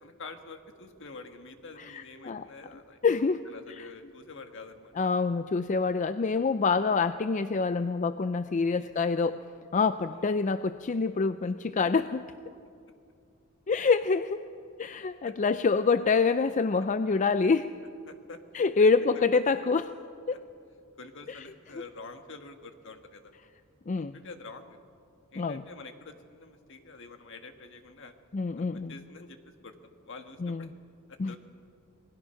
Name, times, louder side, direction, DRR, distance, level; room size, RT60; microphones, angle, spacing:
voice 1, 0.0-3.0 3.4-4.9 8.7-8.9 10.1-10.2 11.4-11.5 15.2-15.3 18.1-18.4 18.8-18.9 19.1-19.2 20.3-20.4 21.0-23.3 24.0-24.8 25.3-28.1 28.6-29.4 29.6-29.7 30.0-30.7 31.1-31.4, left 3 dB, 60° left, 6 dB, 1.7 m, -47 dB
voice 2, 1.8-2.5 3.0-3.4 3.8-3.9 5.0-9.4 9.7-12.2 13.7-14.4 14.8-17.7 18.5-19.9 20.3-20.4 21.3-21.4 23.9-24.2 25.4-25.6 28.3-28.9 30.4-30.7 31.2-31.4, left 4 dB, 35° left, 12 dB, 0.4 m, -26 dB
27.5 x 20.0 x 5.8 m, 2.5 s
head